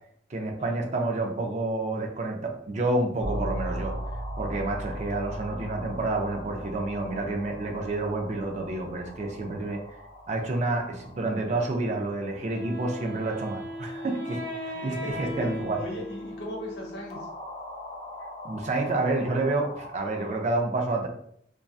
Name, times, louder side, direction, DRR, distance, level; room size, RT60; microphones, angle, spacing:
voice 1, 0.3-3.9 4.4-9.8 10.3-15.8 18.4-21.1, right 2 dB, 40° right, 3 dB, 0.4 m, -29 dB
sound 1, 3.2-20.4, equal, 40° left, 0.4 m, -40 dB
Wind instrument woodwind instrument, 12.5-17.3, equal, 55° right, 1.1 m, -38 dB
voice 2, 14.7-15.3 15.8-17.3, left 1 dB, 65° left, -1 dB, 0.7 m, -38 dB
2.6 x 2.2 x 2.3 m, 0.68 s
head